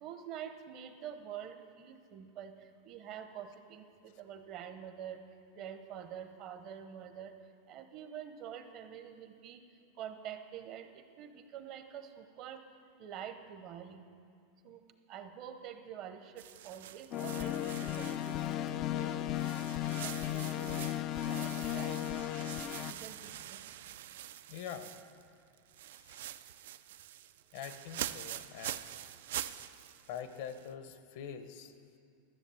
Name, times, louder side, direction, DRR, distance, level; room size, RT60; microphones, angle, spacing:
voice 1, 0.0-7.3 7.7-9.6 10.0-12.6 13.0-14.1 14.6-14.8 15.1-19.6 20.0-20.9 21.3-22.2 22.9-23.6, right 9 dB, 40° right, 8 dB, 0.7 m, -47 dB
sound 1, 16.4-18.9 19.3-25.3 25.6-30.7, right 12 dB, 75° right, 0.4 m, -45 dB
sound 2, 17.1-22.9, left 12 dB, 35° left, 0.3 m, -35 dB
voice 2, 24.5-24.9 26.0-26.2 27.5-29.0 30.1-31.7, left 8 dB, 60° left, 10 dB, 0.7 m, -44 dB
13.5 x 7.2 x 7.0 m, 2.3 s
supercardioid pair, 155°, 0 cm